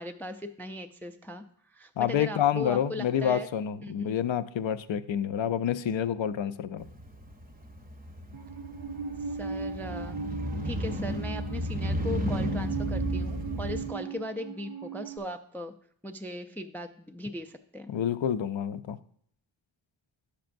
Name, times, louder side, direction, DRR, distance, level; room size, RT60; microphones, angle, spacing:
voice 1, 0.0-1.4 1.7-3.5 3.8-3.9 9.3-10.2 10.6-15.7 16.0-17.9, left 1 dB, 5° left, 7 dB, 0.3 m, -38 dB
voice 2, 2.0-6.9 17.9-19.0, left 9 dB, 65° left, 13 dB, 0.5 m, -28 dB
Motorcycle, 6.8-13.9, equal, 20° right, 0.7 m, -33 dB
Musical instrument, 8.3-15.2, right 5 dB, 80° right, 0.8 m, -38 dB
10.0 x 6.8 x 2.6 m, 0.64 s
wide cardioid pair, 85°, 49 cm